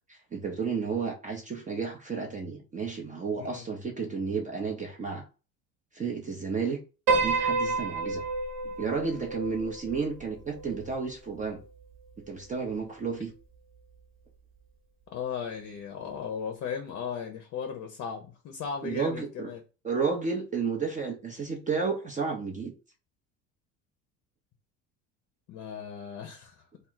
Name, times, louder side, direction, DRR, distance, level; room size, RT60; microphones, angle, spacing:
voice 1, 0.1-5.2 5.9-6.8 7.1-8.2 8.8-11.6 12.3-13.3 18.8-19.5 19.8-22.7, right 5 dB, 20° right, 0.5 m, -32 dB
Piano, 7.1-11.5, right 4 dB, 45° right, 0.9 m, -30 dB
voice 2, 15.1-19.6 25.5-26.5, left 7 dB, 40° left, 0.6 m, -36 dB
2.2 x 2.0 x 3.7 m
hypercardioid pair, 75°, 40 cm